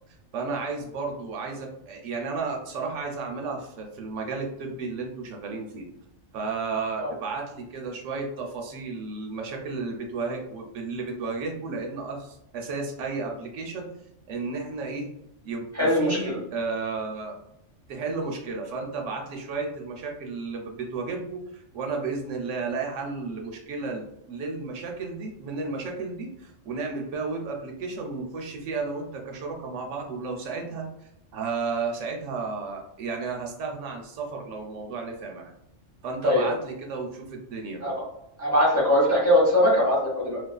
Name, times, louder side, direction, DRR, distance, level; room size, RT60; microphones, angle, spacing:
voice 1, 0.3-5.9 6.3-13.9 14.3-15.1 15.4-17.4 17.9-30.9 31.3-35.5 36.0-37.9, right 4 dB, 80° right, 1 dB, 0.9 m, -33 dB
voice 2, 15.8-16.4 36.2-36.5 37.8-37.9 38.4-40.4, left 1 dB, 20° left, -5 dB, 0.5 m, -21 dB
2.4 x 2.3 x 2.2 m, 0.82 s
omnidirectional pair, 1.3 m